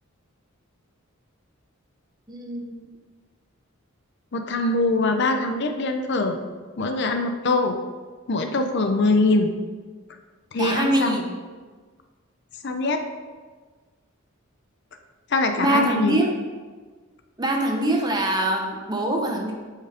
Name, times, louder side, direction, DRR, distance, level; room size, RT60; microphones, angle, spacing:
voice 1, 2.3-2.7 10.6-11.3 15.6-16.3 17.4-19.5, right 1 dB, 20° right, 1 dB, 0.9 m, -23 dB
voice 2, 4.3-6.4 6.8-7.8 8.3-9.5 10.5-11.2 12.6-13.0 15.3-16.2, left 2 dB, 55° left, 6 dB, 0.6 m, -23 dB
8.5 x 4.6 x 5.0 m, 1.4 s
head